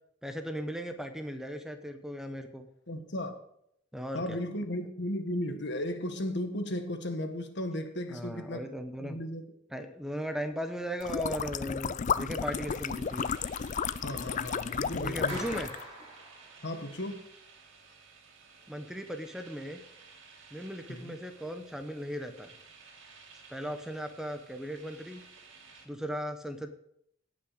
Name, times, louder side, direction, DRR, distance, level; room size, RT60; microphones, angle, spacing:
voice 1, 0.2-2.7 3.9-4.4 8.1-9.2 9.7-13.3 15.0-15.7 18.7-19.8 20.5-22.5 23.5-25.2 25.8-26.7, equal, 5° right, 7 dB, 0.8 m, -37 dB
voice 2, 2.9-3.3 4.1-8.7 9.0-9.5 14.0-15.4 16.6-17.3 20.9-21.1, left 1 dB, 60° left, 6 dB, 1.5 m, -35 dB
sound 1, 11.0-15.8, left 6 dB, 40° left, 0.4 m, -33 dB
sound 2, 12.4-25.9, right 5 dB, 75° right, 2.4 m, -55 dB
Clapping, 15.3-16.9, right 1 dB, 30° right, 5.4 m, -44 dB
18.0 x 6.0 x 5.0 m, 0.73 s
head